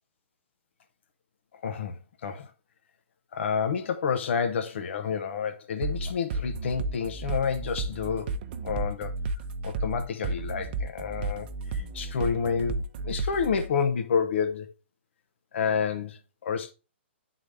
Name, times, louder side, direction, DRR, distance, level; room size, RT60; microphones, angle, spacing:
voice 1, 1.5-2.5 3.3-8.3 8.6-9.1 9.6-14.7 15.5-16.7, left 6 dB, 65° left, 0.7 m, -29 dB
sound 1, 5.8-13.7, right 3 dB, 45° right, 0.6 m, -32 dB
9.1 x 3.8 x 3.3 m
hypercardioid pair, 135°, 7 cm